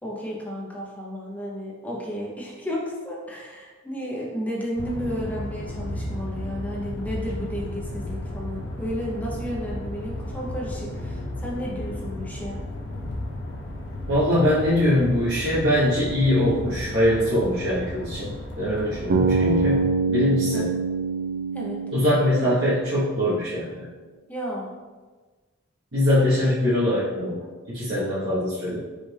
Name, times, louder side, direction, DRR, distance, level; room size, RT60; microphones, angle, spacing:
voice 1, 0.0-12.6 20.5-20.7 21.5-21.8 24.3-24.7, equal, 10° left, -4 dB, 0.7 m, -32 dB
sound 1, 4.8-19.9, left 1 dB, 60° left, 0.7 m, -34 dB
voice 2, 14.1-20.7 21.9-23.8 25.9-27.4 27.7-28.8, left 1 dB, 65° right, -12 dB, 1.1 m, -22 dB
Bass guitar, 19.1-23.2, right 5 dB, 45° right, 0.4 m, -25 dB
5.2 x 2.5 x 3.3 m, 1.3 s
head